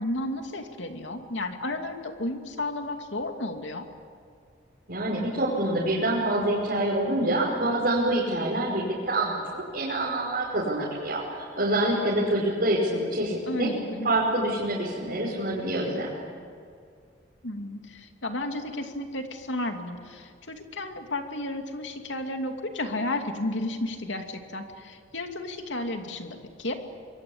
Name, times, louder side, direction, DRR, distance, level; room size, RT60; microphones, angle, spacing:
voice 1, 0.0-3.8 13.5-14.1 17.4-26.8, left 1 dB, 85° left, 5 dB, 2.6 m, -33 dB
voice 2, 4.9-13.7 14.0-16.2, right 1 dB, 55° right, -6 dB, 5.3 m, -26 dB
25.5 x 23.0 x 8.7 m, 2.2 s
head